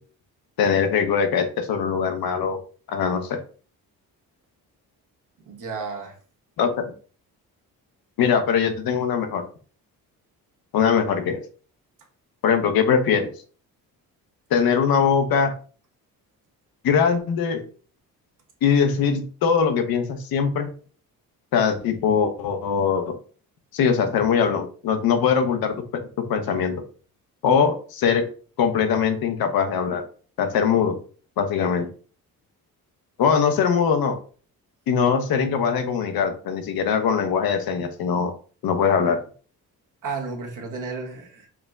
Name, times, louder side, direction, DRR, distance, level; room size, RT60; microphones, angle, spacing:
voice 1, 0.6-2.6 2.9-3.4 6.6-6.9 8.2-9.4 10.7-11.4 12.4-13.3 14.5-15.5 16.8-17.6 18.6-20.7 21.5-23.2 23.7-26.0 26.3-26.7 27.4-28.2 28.6-30.0 30.4-31.0 31.4-31.9 33.2-34.2 34.9-38.3 38.6-39.2, left 6 dB, 75° left, 7 dB, 0.8 m, -21 dB
voice 2, 5.5-6.2 40.0-41.5, right 4 dB, 55° right, 2 dB, 1.2 m, -32 dB
4.8 x 2.1 x 3.5 m, 0.41 s
cardioid pair, 90°, 36 cm